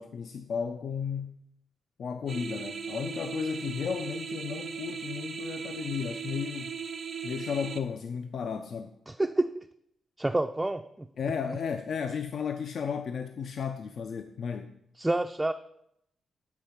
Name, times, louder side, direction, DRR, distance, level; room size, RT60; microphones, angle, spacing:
voice 1, 0.0-1.4 2.0-6.8 7.2-9.0 11.2-14.7, left 6 dB, 65° left, 0.4 m, -34 dB
sound 1, 2.3-7.8, right 6 dB, 50° right, 0.6 m, -38 dB
voice 2, 9.1-9.6 10.2-10.8 15.0-15.5, right 2 dB, 15° right, 0.3 m, -28 dB
8.0 x 3.6 x 5.6 m
cardioid pair, 80°, 0 cm